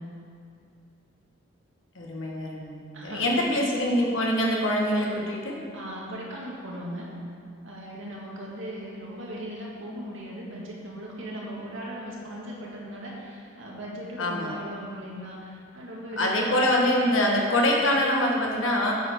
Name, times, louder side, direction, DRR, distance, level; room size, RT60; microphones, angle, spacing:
voice 1, 1.9-5.6 14.2-14.5 16.2-18.9, left 1 dB, 75° left, -1 dB, 1.5 m, -24 dB
voice 2, 2.9-3.5 5.7-7.1 7.6-16.9, equal, 75° right, -4 dB, 1.9 m, -38 dB
9.1 x 6.9 x 4.6 m, 2.3 s
head